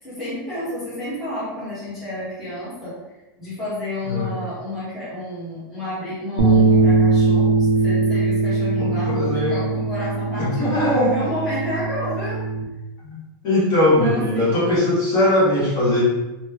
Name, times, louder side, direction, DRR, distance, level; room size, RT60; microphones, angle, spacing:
voice 1, 0.0-3.0 3.4-12.4 14.0-14.7, left 1 dB, ahead, -14 dB, 1.0 m, -30 dB
voice 2, 4.0-4.3 8.8-9.6 10.4-11.2 13.1-16.0, left 1 dB, 30° left, -8 dB, 1.1 m, -20 dB
sound 1, 6.4-12.6, right 3 dB, 55° right, 0.8 m, -20 dB
3.1 x 2.2 x 3.3 m, 1.0 s
supercardioid pair, 175°, 12 cm